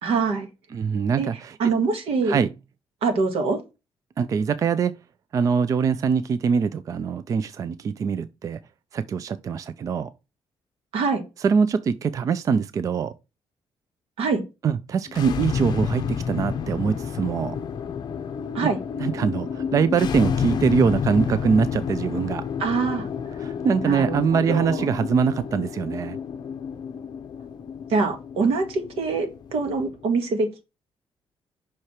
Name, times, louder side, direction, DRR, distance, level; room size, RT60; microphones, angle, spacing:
voice 1, 0.0-0.5 1.2-1.3 1.6-2.4 3.0-3.6 10.9-11.2 14.2-14.4 18.5-18.8 22.6-23.1 23.8-24.9 27.9-30.7, right 4 dB, 85° right, 1.7 m, -24 dB
voice 2, 0.7-1.5 2.3-2.5 4.2-5.0 5.3-8.6 8.9-10.1 11.4-13.1 14.6-17.6 19.0-22.4 23.4-26.2, right 6 dB, 35° right, 0.4 m, -23 dB
sound 1, 15.1-30.0, left 7 dB, 45° left, 0.6 m, -30 dB
5.6 x 4.8 x 4.3 m
cardioid pair, 175°, 10 cm